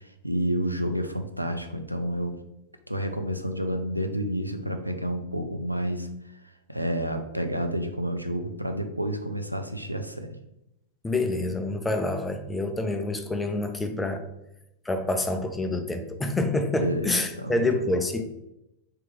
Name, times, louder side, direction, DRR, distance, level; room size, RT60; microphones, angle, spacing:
voice 1, 0.2-2.3 2.9-6.1 6.7-10.4 16.8-17.9, equal, 90° right, 6 dB, 0.3 m, -30 dB
voice 2, 11.0-14.2 14.9-18.2, left 2 dB, 10° left, 6 dB, 0.4 m, -27 dB
3.3 x 2.9 x 3.1 m, 0.87 s
figure-of-eight pair, 90°, 0 cm